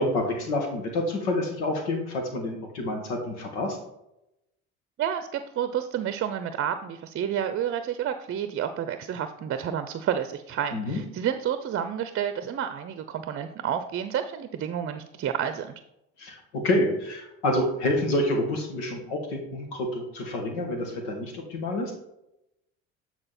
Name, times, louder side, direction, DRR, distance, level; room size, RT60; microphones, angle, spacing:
voice 1, 0.0-3.8 10.7-11.0 16.2-21.9, left 1 dB, 80° left, 3 dB, 2.0 m, -28 dB
voice 2, 5.0-15.7, right 9 dB, 40° right, 10 dB, 0.7 m, -30 dB
8.8 x 4.3 x 4.3 m, 0.85 s
hypercardioid pair, 70°, 33 cm